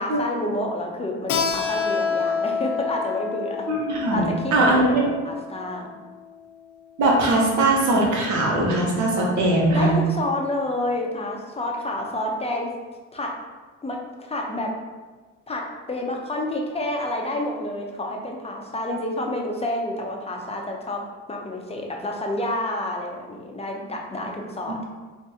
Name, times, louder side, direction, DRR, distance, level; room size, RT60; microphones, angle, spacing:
voice 1, 0.0-3.7 4.1-5.9 9.7-12.7 13.1-13.3 13.8-14.7 15.5-21.0 21.3-24.8, left 1 dB, 20° left, 0 dB, 0.6 m, -29 dB
Keyboard (musical), 1.3-6.6, left 5 dB, 80° left, 0.5 m, -28 dB
voice 2, 3.7-5.1 7.0-9.9, right 2 dB, 70° right, -2 dB, 1.0 m, -20 dB
3.8 x 2.6 x 2.7 m, 1.3 s
cardioid pair, 90°, 30 cm